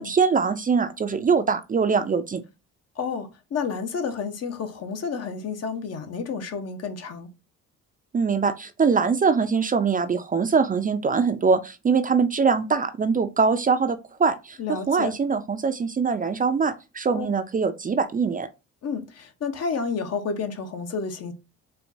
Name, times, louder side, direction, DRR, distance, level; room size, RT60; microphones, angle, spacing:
voice 1, 0.0-2.4 8.1-18.5, right 5 dB, 30° right, 0.4 m, -23 dB
voice 2, 3.0-7.3 14.6-15.1 17.1-17.3 18.8-21.3, left 5 dB, 55° left, 0.9 m, -30 dB
4.4 x 2.3 x 2.6 m
cardioid pair, 90°, 30 cm